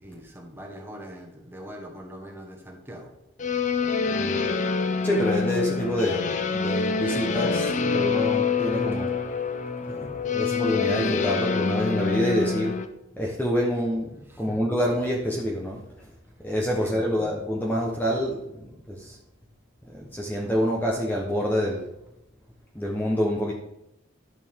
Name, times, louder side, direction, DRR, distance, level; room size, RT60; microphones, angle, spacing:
voice 1, 0.0-3.1 8.9-9.0 9.4-10.6 14.3-14.6 16.8-17.3, equal, 10° right, 1 dB, 1.4 m, -42 dB
sound 1, 3.4-12.9, left 4 dB, 35° left, 0.6 m, -26 dB
voice 2, 4.1-4.4 5.0-9.1 9.9-12.7 13.2-14.1 14.4-15.8 16.4-18.4 18.9-19.1 19.9-21.8 22.7-23.5, equal, 10° left, -3 dB, 0.9 m, -27 dB
11.5 x 6.9 x 3.6 m, 0.86 s
head